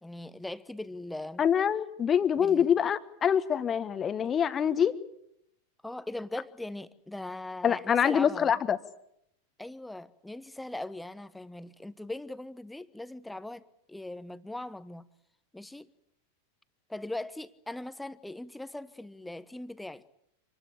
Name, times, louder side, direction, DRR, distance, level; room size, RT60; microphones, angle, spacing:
voice 1, 0.0-1.4 2.4-2.7 5.8-8.6 9.6-13.6 13.9-15.1 15.5-15.9 16.9-20.0, left 1 dB, 5° left, 15 dB, 1.1 m, -40 dB
voice 2, 1.4-4.9 7.6-8.8, left 8 dB, 25° left, 14 dB, 1.4 m, -25 dB
27.0 x 20.0 x 8.7 m, 0.75 s
figure-of-eight pair, 90°, 0 cm